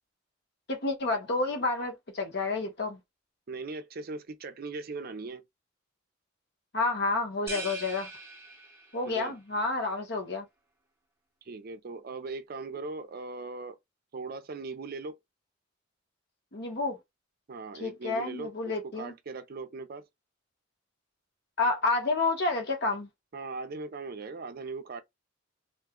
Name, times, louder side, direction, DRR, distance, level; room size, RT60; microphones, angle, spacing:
voice 1, 0.7-3.0 6.7-8.1 8.9-10.4 16.5-17.0 17.8-19.1 21.6-23.1, left 3 dB, 55° left, 1.0 m, -29 dB
voice 2, 3.5-5.4 9.1-9.4 11.4-13.8 14.1-15.2 17.5-20.1 23.3-25.0, right 3 dB, 45° right, 0.5 m, -39 dB
sound 1, 7.5-9.2, right 3 dB, 15° right, 0.7 m, -41 dB
2.5 x 2.2 x 3.6 m
head